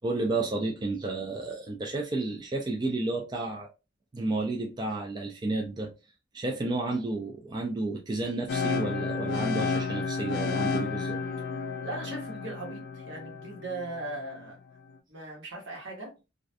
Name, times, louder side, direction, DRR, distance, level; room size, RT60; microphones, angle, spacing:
voice 1, 0.0-3.7 4.1-5.9 6.3-11.2, right 2 dB, 25° right, 0.3 m, -31 dB
sound 1, 8.5-14.4, left 4 dB, 65° left, 0.3 m, -32 dB
voice 2, 11.8-14.6 15.1-16.1, right 2 dB, 75° right, 1.1 m, -38 dB
2.4 x 2.1 x 2.5 m
head